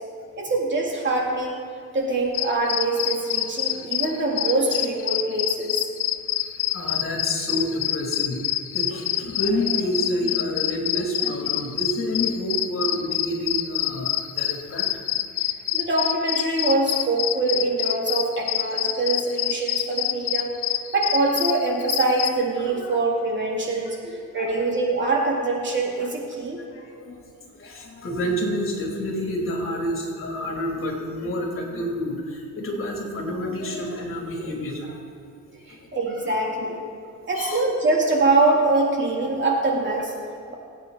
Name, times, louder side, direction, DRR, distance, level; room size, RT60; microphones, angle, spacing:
voice 1, 0.4-1.6 1.9-5.9 15.7-20.5 20.9-26.6 35.7-36.9 37.3-40.2, right 2 dB, 40° right, -2 dB, 3.4 m, -24 dB
sound 1, 2.3-22.3, left 13 dB, 90° left, 0.6 m, -26 dB
voice 2, 6.7-8.4 8.7-14.9 22.6-23.0 24.3-24.7 26.0-26.1 26.6-35.0 35.5-35.8 37.3-37.6, equal, 45° left, 0 dB, 3.4 m, -29 dB
23.5 x 9.2 x 4.2 m, 2.4 s
cardioid pair, 90°, 30 cm